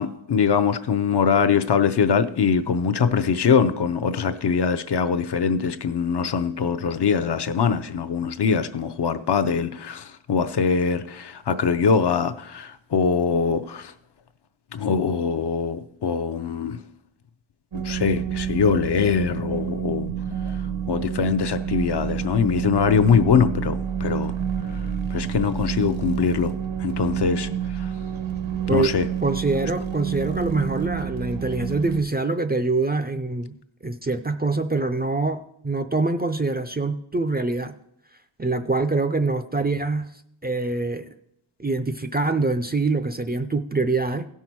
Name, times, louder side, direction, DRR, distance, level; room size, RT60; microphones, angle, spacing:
voice 1, 0.0-13.9 14.7-16.8 17.7-20.1 20.5-24.3 24.7-26.5 26.8-27.9 28.7-29.1, left 6 dB, 60° left, 9 dB, 0.6 m, -23 dB
sound 1, 17.7-32.0, right 8 dB, 80° right, 1.1 m, -29 dB
voice 2, 28.7-33.5 33.8-37.7 38.4-40.1 40.4-41.1 41.6-44.3, right 3 dB, 20° right, 8 dB, 0.4 m, -24 dB
16.0 x 5.7 x 4.6 m, 0.75 s
wide cardioid pair, 120°, 47 cm